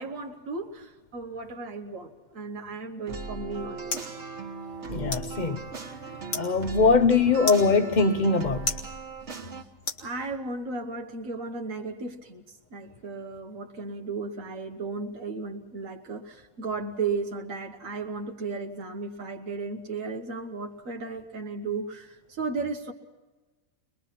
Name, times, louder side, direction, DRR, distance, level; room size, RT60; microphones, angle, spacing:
voice 1, 0.0-3.9 9.3-9.6 10.0-12.4 12.7-22.9, right 4 dB, 90° right, 1.8 m, -35 dB
sound 1, 3.1-10.6, left 3 dB, 70° left, 2.4 m, -39 dB
sound 2, 3.1-9.6, right 4 dB, 60° right, 1.8 m, -38 dB
voice 2, 4.9-5.6 6.3-8.7, left 4 dB, 40° left, 0.9 m, -22 dB
23.5 x 21.5 x 5.9 m
omnidirectional pair, 1.3 m